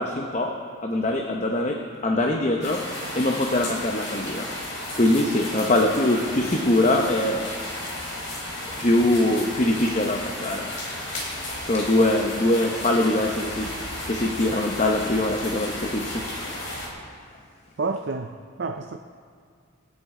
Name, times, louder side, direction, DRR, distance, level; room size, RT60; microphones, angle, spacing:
voice 1, 0.0-2.9 3.1-4.5 4.9-7.5 8.8-10.7 11.1-11.3 11.6-13.8 14.1-16.3, left 1 dB, 35° left, 2 dB, 0.8 m, -23 dB
sound 1, 2.6-16.9, left 1 dB, 70° left, 3.7 m, -33 dB
voice 2, 17.8-19.0, right 4 dB, 55° right, 6 dB, 0.5 m, -29 dB
25.5 x 8.7 x 3.7 m, 2.1 s
head